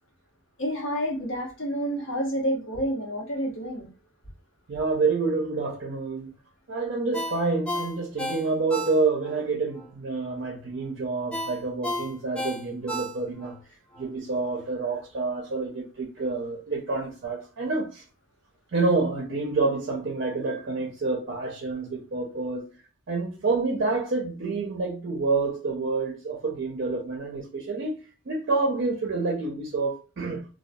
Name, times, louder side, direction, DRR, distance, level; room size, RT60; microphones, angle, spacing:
voice 1, 0.6-3.9, equal, 75° left, 0.9 m, -29 dB
voice 2, 4.7-6.3 6.7-13.5 14.0-18.0 18.7-22.7 23.1-28.0 28.3-30.5, right 3 dB, 55° right, 0.5 m, -28 dB
Ringtone, 7.1-9.4 9.8-9.9 11.3-13.6 13.9-14.1, equal, 5° left, 0.4 m, -33 dB
2.5 x 2.2 x 2.2 m
head